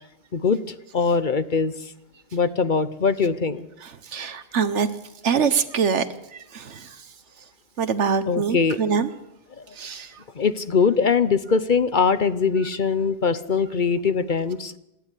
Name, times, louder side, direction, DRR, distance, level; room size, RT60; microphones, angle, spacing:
voice 1, 0.9-1.9 2.3-3.7 8.3-8.8 9.6-9.7 10.3-14.8, left 5 dB, 45° left, 13 dB, 1.0 m, -22 dB
voice 2, 3.8-4.9 5.2-6.1 6.3-7.1 7.8-9.1 9.7-10.2, right 6 dB, 80° right, 12 dB, 1.4 m, -24 dB
27.5 x 11.5 x 8.4 m, 0.94 s
omnidirectional pair, 1.2 m